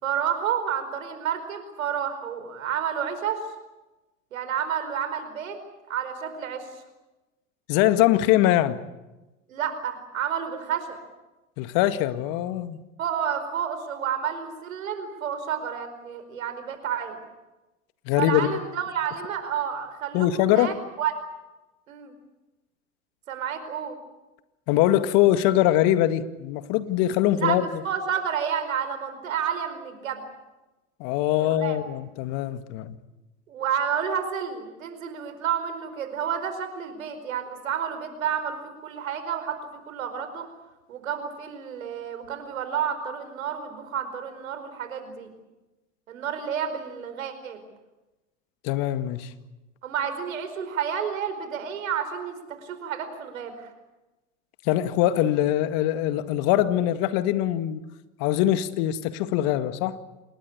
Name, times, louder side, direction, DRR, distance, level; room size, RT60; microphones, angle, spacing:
voice 1, 0.0-3.4 4.3-5.6 5.9-6.7 9.5-11.0 13.0-17.2 18.2-21.1 21.9-22.2 23.3-24.0 27.3-30.2 31.4-31.8 33.5-38.6 38.8-40.5 40.9-45.3 46.1-47.6 49.8-53.7, right 8 dB, 80° right, 4.9 m, -30 dB
voice 2, 7.7-8.8 11.6-12.8 18.1-18.5 20.1-20.7 24.7-27.6 31.0-32.9 48.6-49.3 54.7-57.8 58.2-60.0, left 13 dB, 55° left, 2.0 m, -22 dB
28.0 x 20.5 x 8.5 m
hypercardioid pair, 85°, 40 cm